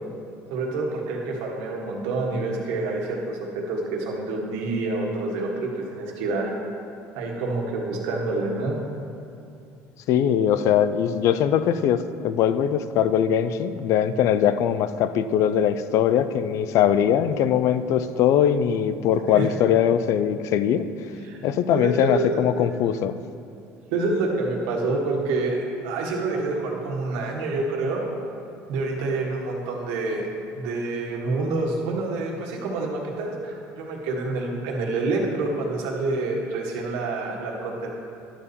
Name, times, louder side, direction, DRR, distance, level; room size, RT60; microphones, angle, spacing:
voice 1, 0.5-6.5 7.1-8.8 19.3-19.5 21.2-21.4 21.7-22.4 23.9-28.1 28.7-30.2 30.5-37.9, right 3 dB, 85° right, -1 dB, 1.6 m, -27 dB
voice 2, 10.1-20.9 21.4-23.2, left 9 dB, 60° left, 12 dB, 0.4 m, -21 dB
11.5 x 4.2 x 7.0 m, 2.5 s
cardioid pair, 120°, 6 cm